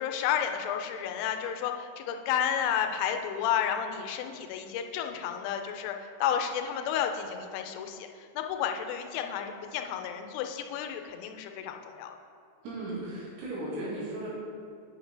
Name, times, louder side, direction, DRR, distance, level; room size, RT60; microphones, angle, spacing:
voice 1, 0.0-12.2, left 9 dB, 90° left, 5 dB, 3.2 m, -31 dB
voice 2, 12.6-14.3, right 1 dB, 75° right, -7 dB, 4.3 m, -36 dB
8.8 x 5.7 x 3.3 m, 2.4 s
omnidirectional pair, 5.7 m